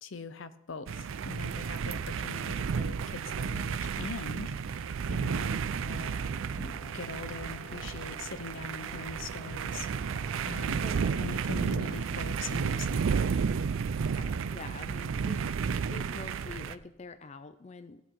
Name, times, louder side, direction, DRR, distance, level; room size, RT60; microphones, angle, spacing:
voice 1, 0.0-4.6 5.1-6.2 6.6-9.9 10.5-10.8 11.2-13.3, left 4 dB, 65° left, 13 dB, 0.7 m, -42 dB
sound 1, 0.9-16.7, right 6 dB, 70° right, 0.4 m, -32 dB
Brass instrument, 6.0-13.0, right 1 dB, 15° left, 2.4 m, -54 dB
voice 2, 10.8-11.4 14.1-15.4 15.9-18.0, left 3 dB, 30° left, 11 dB, 0.4 m, -46 dB
15.0 x 8.2 x 4.5 m, 0.92 s
head